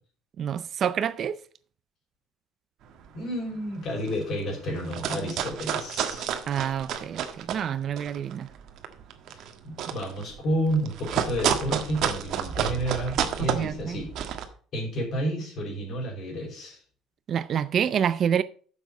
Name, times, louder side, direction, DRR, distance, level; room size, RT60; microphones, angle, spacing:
voice 1, 0.4-1.4 6.5-8.5 13.4-14.0 17.3-18.4, right 8 dB, 35° right, 0.4 m, -27 dB
sound 1, 2.9-3.2 3.7-3.8 3.9-4.4 4.7-7.6 8.0-14.4, right 9 dB, 55° right, 1.4 m, -30 dB
voice 2, 3.1-6.4 9.3-14.1 14.7-16.8, equal, 40° left, 5.1 m, -31 dB
10.5 x 7.2 x 5.3 m
cardioid pair, 165°, 0 cm